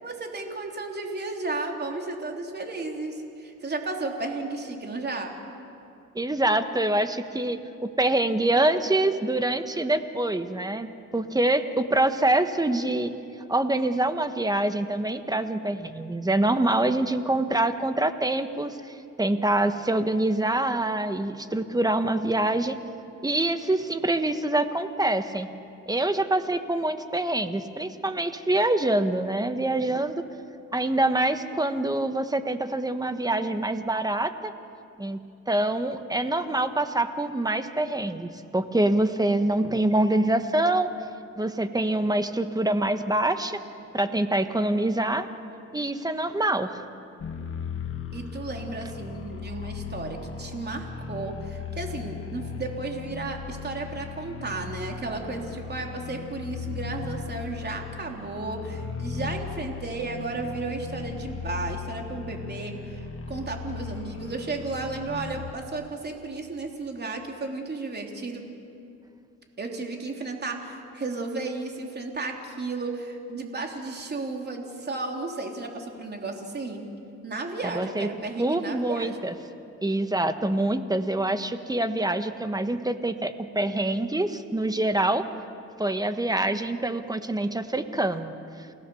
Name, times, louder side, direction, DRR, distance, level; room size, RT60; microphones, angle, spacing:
voice 1, 0.0-5.3 48.1-68.4 69.6-76.9 77.2-79.2, right 3 dB, 35° right, 2 dB, 3.5 m, -33 dB
voice 2, 6.1-10.9 11.1-13.1 13.5-18.8 19.2-22.8 23.2-25.5 25.9-30.2 30.7-34.5 35.0-35.2 35.5-40.9 41.4-43.6 43.9-45.3 45.7-46.8 77.6-78.1 78.4-79.3 79.8-85.3 85.8-88.3, right 1 dB, 10° right, 9 dB, 1.3 m, -25 dB
sound 1, 47.2-65.5, left 6 dB, 45° left, 2.0 m, -37 dB
29.0 x 17.5 x 7.1 m, 2.6 s
cardioid pair, 90°, 30 cm